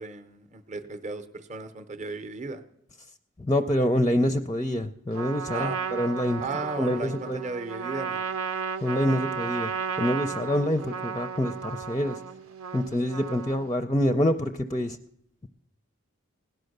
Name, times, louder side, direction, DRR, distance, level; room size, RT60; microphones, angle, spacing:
voice 1, 0.0-2.6 5.5-5.8 6.4-8.2, right 3 dB, 35° right, 10 dB, 0.7 m, -35 dB
voice 2, 3.4-6.4 6.8-7.4 8.8-9.7 10.0-12.2 12.7-15.0, left 1 dB, 15° left, 8 dB, 0.4 m, -26 dB
Trumpet, 5.1-13.8, right 6 dB, 90° right, 0.9 m, -34 dB
17.0 x 10.5 x 6.6 m, 0.75 s
head